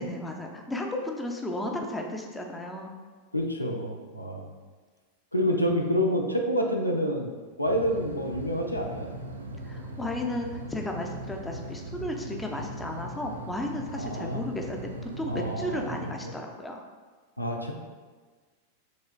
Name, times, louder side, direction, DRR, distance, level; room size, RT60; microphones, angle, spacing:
voice 1, 0.0-2.9 9.6-16.8, left 1 dB, 10° left, 2 dB, 0.5 m, -34 dB
voice 2, 3.3-4.5 5.3-7.3 7.6-9.1 13.9-14.4 15.3-15.9 16.2-16.3 17.4-17.7, equal, 85° left, 2 dB, 0.4 m, -28 dB
sound 1, 7.6-16.1, right 1 dB, 75° right, 0.4 m, -39 dB
6.2 x 3.1 x 2.2 m, 1.4 s
figure-of-eight pair, 90°, 0 cm